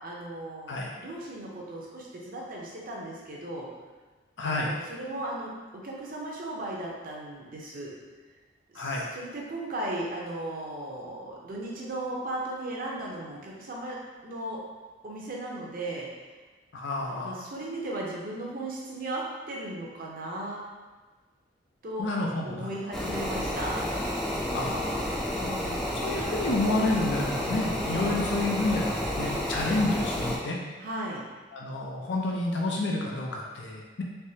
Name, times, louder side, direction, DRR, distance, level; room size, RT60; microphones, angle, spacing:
voice 1, 0.0-3.7 4.4-7.9 8.7-14.0 14.2-14.6 15.0-16.2 17.1-20.6 21.8-22.0 22.4-23.8 25.3-26.0 27.9-28.2 30.8-31.2, right 1 dB, 50° right, -3 dB, 0.7 m, -36 dB
voice 2, 4.4-4.8 8.7-9.1 16.7-17.4 22.0-22.7 24.5-25.2 26.0-30.6 31.5-34.0, left 2 dB, 70° left, -1 dB, 0.5 m, -29 dB
sound 1, 22.9-30.4, left 1 dB, ahead, 0.5 m, -31 dB
3.4 x 3.1 x 2.8 m, 1.3 s
head